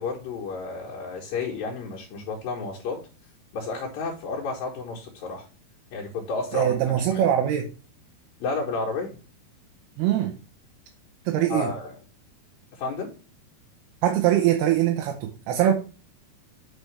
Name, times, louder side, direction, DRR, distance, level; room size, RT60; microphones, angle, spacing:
voice 1, 0.0-3.0 3.5-5.5 5.9-7.2 8.4-9.2 11.5-12.0 12.7-13.1, left 3 dB, 70° left, 2.9 m, -31 dB
voice 2, 6.5-7.7 10.0-10.3 11.3-11.7 14.0-15.7, right 11 dB, 85° right, 2.8 m, -22 dB
8.1 x 5.8 x 3.3 m
omnidirectional pair, 4.5 m